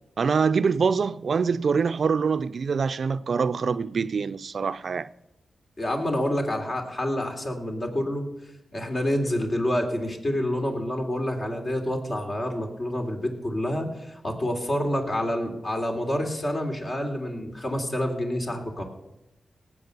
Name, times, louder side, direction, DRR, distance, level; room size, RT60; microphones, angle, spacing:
voice 1, 0.2-5.1, right 5 dB, 65° right, 0.5 m, -24 dB
voice 2, 5.8-8.3 8.7-18.8, left 1 dB, 45° left, 3.2 m, -28 dB
18.0 x 7.7 x 6.8 m
cardioid pair, 55°, 0 cm